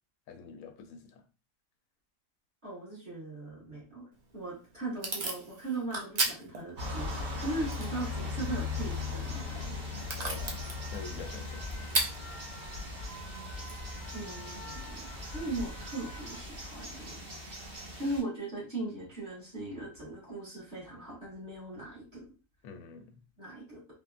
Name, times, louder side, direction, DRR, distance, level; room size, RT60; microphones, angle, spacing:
voice 1, 0.3-1.2 10.1-10.6 10.9-11.7 22.6-23.1, left 6 dB, 80° left, 7 dB, 1.0 m, -46 dB
voice 2, 2.6-9.6 14.1-17.2 17.9-22.3 23.4-23.8, right 2 dB, 35° right, -7 dB, 1.6 m, -39 dB
Packing tape duct tape / Tearing, 4.1-14.9, right 2 dB, 55° right, 0.4 m, -39 dB
sound 1, 6.8-18.2, left 3 dB, 70° right, 1.7 m, -39 dB
sound 2, 8.1-16.4, left 1 dB, 55° left, 0.5 m, -49 dB
3.6 x 2.1 x 2.4 m, 0.33 s
omnidirectional pair, 1.4 m